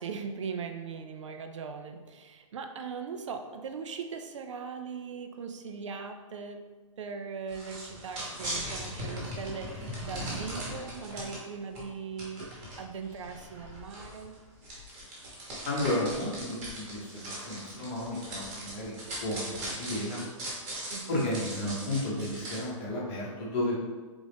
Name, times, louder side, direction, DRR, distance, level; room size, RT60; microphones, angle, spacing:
voice 1, 0.0-6.7 7.0-14.4 20.9-21.1, right 5 dB, 60° right, 6 dB, 0.4 m, -39 dB
sound 1, 7.5-11.4 11.7-11.8 12.2-22.6, right 1 dB, 20° right, 1.0 m, -39 dB
voice 2, 15.6-20.2 21.1-23.8, left 1 dB, 20° left, -4 dB, 0.8 m, -33 dB
3.9 x 3.6 x 3.4 m, 1.4 s
hypercardioid pair, 175°, 17 cm